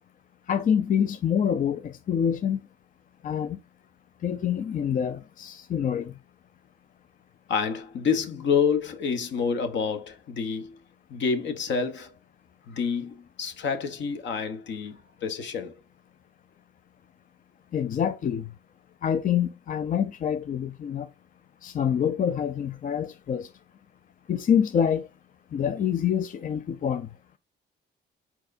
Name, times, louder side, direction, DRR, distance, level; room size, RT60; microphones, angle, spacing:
voice 1, 0.5-2.6 3.2-3.6 4.2-6.2 17.7-18.6 19.0-21.1 21.6-23.5 24.3-25.1 25.5-27.1, left 8 dB, 45° left, 0.4 m, -26 dB
voice 2, 7.5-10.7 11.1-12.1 12.7-15.7, left 6 dB, 65° left, 1.1 m, -28 dB
4.5 x 4.3 x 2.6 m
cardioid pair, 90°, 20 cm